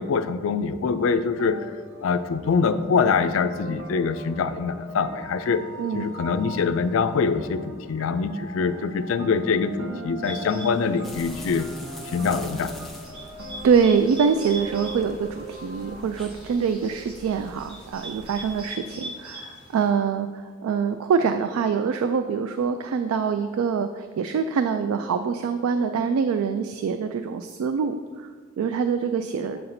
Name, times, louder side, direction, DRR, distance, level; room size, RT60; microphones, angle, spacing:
voice 1, 0.0-1.6 2.0-5.6 5.9-11.7 12.0-12.9, left 5 dB, 70° left, 11 dB, 0.3 m, -24 dB
sound 1, 1.3-16.1, right 1 dB, 65° right, 0.7 m, -41 dB
voice 2, 5.8-6.1 13.6-20.3 20.6-28.3 28.6-29.6, right 6 dB, 90° right, 8 dB, 0.3 m, -24 dB
Bird, 10.2-19.9, right 1 dB, 25° right, 0.9 m, -42 dB
sound 2, 11.0-18.7, left 1 dB, ahead, 0.4 m, -44 dB
7.6 x 2.6 x 5.8 m, 1.5 s
head